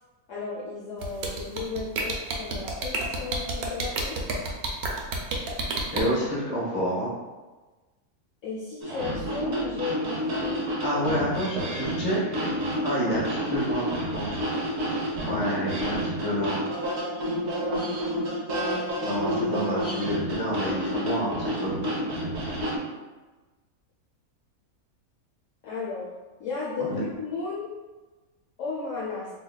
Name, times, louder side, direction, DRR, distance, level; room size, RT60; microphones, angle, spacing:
voice 1, 0.3-4.5 8.4-10.4 10.9-11.0 15.3-15.4 20.5-21.4 21.7-22.1 25.6-26.1 26.4-27.7 28.6-29.3, left 4 dB, 65° left, -6 dB, 0.9 m, -35 dB
sound 1, 1.0-6.0, right 3 dB, 90° right, 1.1 m, -29 dB
voice 2, 5.9-7.1 10.8-12.5 12.8-14.5 15.2-16.6 19.0-21.8 26.8-27.0, equal, 30° left, -5 dB, 0.9 m, -29 dB
sound 2, 8.8-22.8, equal, 60° right, 1.2 m, -29 dB
3.9 x 2.8 x 2.3 m, 1.2 s
omnidirectional pair, 1.5 m